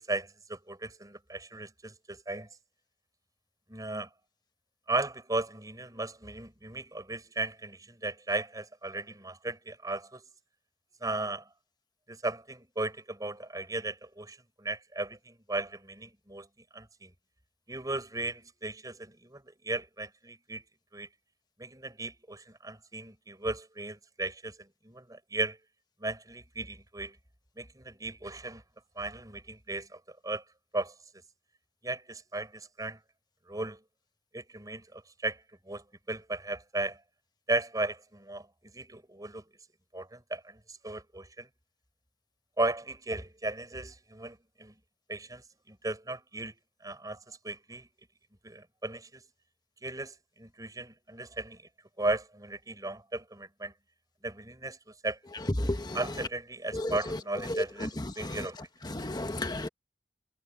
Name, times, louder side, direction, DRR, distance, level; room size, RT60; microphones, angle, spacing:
voice 1, 0.0-2.5 3.7-4.1 4.9-10.2 11.0-11.4 12.1-16.5 16.7-17.1 17.7-20.6 20.9-21.1 21.6-25.6 26.0-27.2 27.6-28.6 29.0-30.4 30.7-30.9 31.8-33.0 33.5-33.8 34.3-35.4 35.7-37.0 37.5-38.5 38.7-39.4 39.9-41.5 42.6-44.7 45.1-45.4 45.7-46.5 46.8-47.9 48.4-49.2 49.8-51.6 52.0-53.7 54.2-54.8 55.0-55.2 55.9-58.6, right 2 dB, 20° right, 6.3 m, -36 dB
voice 2, 55.6-56.0 56.8-56.9 57.5-57.9 58.2-58.4 58.9-59.7, left 1 dB, 25° left, 1.2 m, -32 dB
head